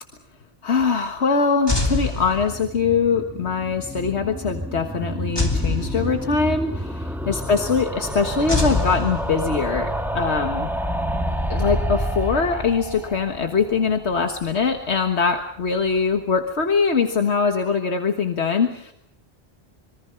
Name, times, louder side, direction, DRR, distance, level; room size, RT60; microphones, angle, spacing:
voice 1, 0.6-10.7 11.5-18.9, left 5 dB, 80° left, 5 dB, 1.8 m, -22 dB
sound 1, 1.7-2.9 5.4-6.6 8.5-9.8, left 2 dB, 20° left, 2.7 m, -25 dB
sound 2, 2.2-15.1 15.4-15.5 15.7-15.8 16.0-16.1, equal, ahead, 1.7 m, -29 dB
26.0 x 23.5 x 5.8 m, 0.70 s
omnidirectional pair, 1.1 m